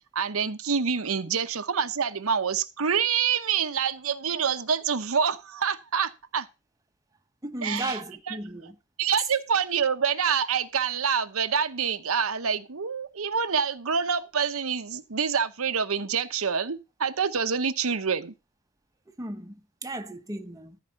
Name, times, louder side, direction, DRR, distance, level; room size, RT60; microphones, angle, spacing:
voice 1, 0.1-6.5 7.6-8.0 8.3-8.4 9.0-18.3, right 6 dB, 70° right, 0.9 m, -26 dB
voice 2, 7.4-8.7 19.2-20.8, right 1 dB, 15° right, 1.0 m, -35 dB
14.5 x 4.9 x 5.8 m
head